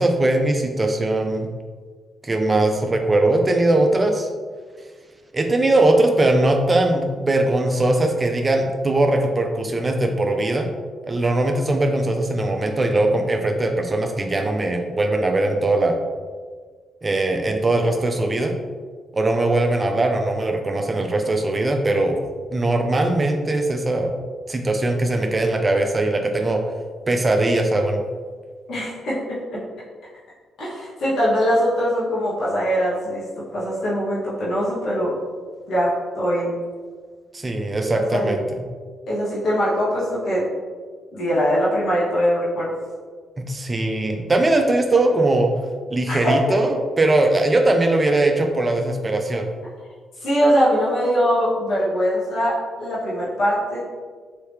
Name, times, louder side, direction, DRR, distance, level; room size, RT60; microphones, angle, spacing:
voice 1, 0.0-1.5 2.2-4.3 5.3-10.7 11.1-15.9 17.0-18.5 19.1-22.2 22.5-24.1 24.5-26.6 27.1-28.0 37.3-38.4 43.5-45.5 45.9-49.5, right 2 dB, 30° right, 4 dB, 0.5 m, -20 dB
voice 2, 28.7-29.6 30.6-33.2 33.5-35.1 35.7-36.6 37.9-38.3 39.1-40.4 41.1-42.7 46.1-46.6 50.2-53.9, equal, 70° left, -8 dB, 1.1 m, -22 dB
3.2 x 2.8 x 3.2 m, 1.6 s
supercardioid pair, 60°, 0 cm